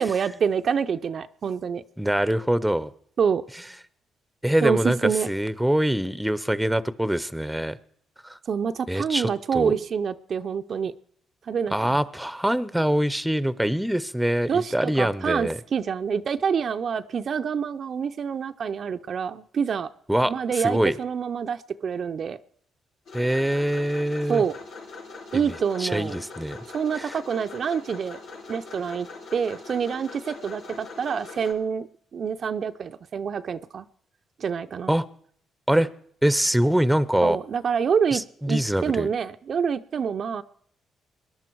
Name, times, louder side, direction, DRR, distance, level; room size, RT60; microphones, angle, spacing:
voice 1, 0.0-1.8 3.2-3.4 4.6-5.3 8.5-10.9 11.5-12.0 14.5-19.9 20.2-22.4 24.3-24.5 25.3-26.1 26.7-28.2 28.5-33.9 34.4-34.9 37.2-40.4, right 6 dB, 55° right, 8 dB, 0.5 m, -27 dB
voice 2, 2.0-2.9 4.4-7.8 8.2-8.4 8.9-9.3 9.5-9.7 11.7-15.6 20.1-20.3 20.6-20.9 23.1-24.4 25.3-25.4 25.8-26.6 27.0-27.1 34.9-35.0 35.7-35.9 36.2-37.4 38.1-39.1, right 1 dB, 5° right, 16 dB, 0.7 m, -24 dB
sound 1, 23.0-31.5, left 4 dB, 85° left, 6.1 m, -42 dB
21.0 x 11.0 x 4.6 m, 0.65 s
cardioid pair, 90°, 0 cm